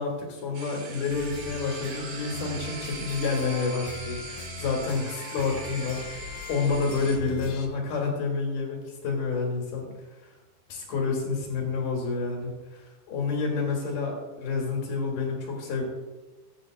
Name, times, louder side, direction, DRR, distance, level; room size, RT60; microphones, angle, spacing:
voice 1, 0.0-8.8 9.0-9.9 10.7-15.8, left 4 dB, 70° left, -2 dB, 4.0 m, -29 dB
sound 1, 0.5-7.2, right 4 dB, 65° right, 3.5 m, -41 dB
sound 2, 1.1-7.7, left 4 dB, 90° left, 3.2 m, -41 dB
19.0 x 8.9 x 2.5 m, 1.2 s
omnidirectional pair, 4.6 m